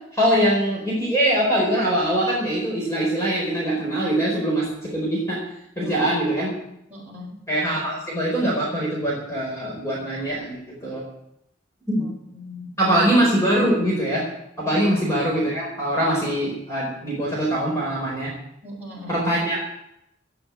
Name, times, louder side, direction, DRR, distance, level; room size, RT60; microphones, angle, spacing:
voice 1, 0.1-5.4 5.8-6.5 7.5-11.0 11.9-12.0 12.8-14.2 14.6-18.3 19.1-19.6, right 1 dB, 15° left, -5 dB, 4.7 m, -23 dB
voice 2, 6.9-7.5 11.9-12.8 14.7-14.8 18.6-19.3, left 2 dB, 10° right, -6 dB, 7.2 m, -39 dB
17.0 x 7.0 x 9.3 m, 0.78 s
head